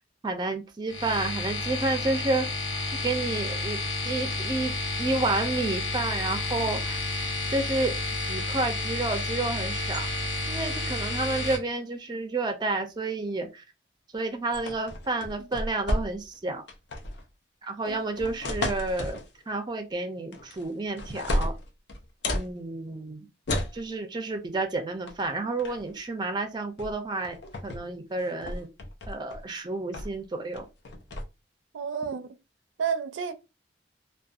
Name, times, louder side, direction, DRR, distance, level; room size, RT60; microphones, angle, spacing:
voice 1, 0.2-2.5 3.0-3.8 4.0-4.7 5.0-7.0 7.5-8.0 8.3-10.1 10.5-13.6 14.1-16.6 17.6-21.5 22.3-23.3 23.7-27.4 27.6-28.7 29.1-30.6, right 2 dB, 25° right, 0.4 m, -30 dB
sound 1, 0.9-11.6, left 2 dB, 80° left, 0.8 m, -31 dB
sound 2, 14.5-16.4 16.7-17.2 17.9-19.3 20.3-20.7 21.0-22.5 23.5-23.8 25.1-25.2 25.6-25.9 26.8-26.9 27.2-27.8 28.2-29.4 29.9-30.2 30.5-31.2, left 1 dB, 65° left, 0.5 m, -32 dB
voice 2, 17.9-18.3 31.7-32.3 32.8-33.3, right 6 dB, 85° right, 0.4 m, -31 dB
2.6 x 2.2 x 2.3 m
head